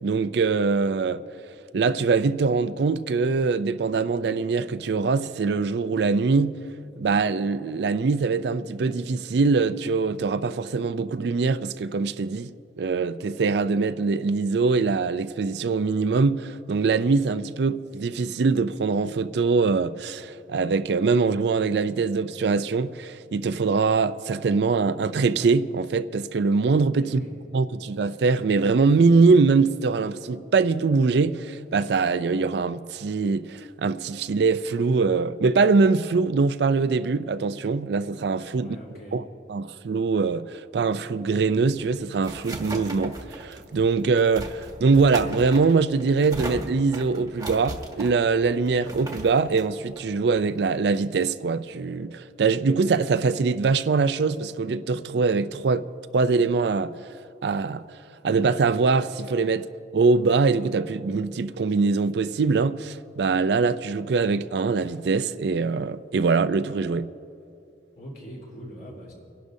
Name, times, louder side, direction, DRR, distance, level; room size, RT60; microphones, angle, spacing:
voice 1, 0.0-1.2 1.7-6.6 7.0-12.5 12.8-27.2 27.5-38.8 39.1-39.2 39.5-55.9 56.1-56.9 57.4-57.8 58.2-59.7 59.9-67.1, right 4 dB, 70° right, 0.4 m, -23 dB
voice 2, 27.0-27.3 38.6-39.2 67.9-69.1, equal, 55° left, 3.5 m, -42 dB
sound 1, 41.6-50.9, right 1 dB, 20° right, 1.1 m, -38 dB
30.0 x 11.5 x 2.7 m
head